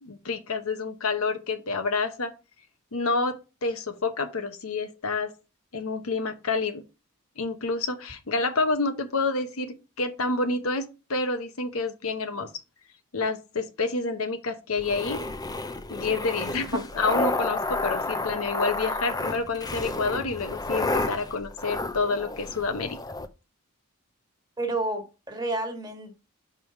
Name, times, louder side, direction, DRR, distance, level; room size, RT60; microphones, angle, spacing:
voice 1, 0.0-2.3 2.9-5.3 5.7-6.8 7.4-12.5 13.1-15.2 15.9-23.0, left 3 dB, 70° left, 0.9 m, -28 dB
sound 1, 14.8-23.3, left 2 dB, 15° left, 0.5 m, -31 dB
voice 2, 24.6-26.1, right 2 dB, 20° right, 1.6 m, -30 dB
5.5 x 4.7 x 5.2 m
head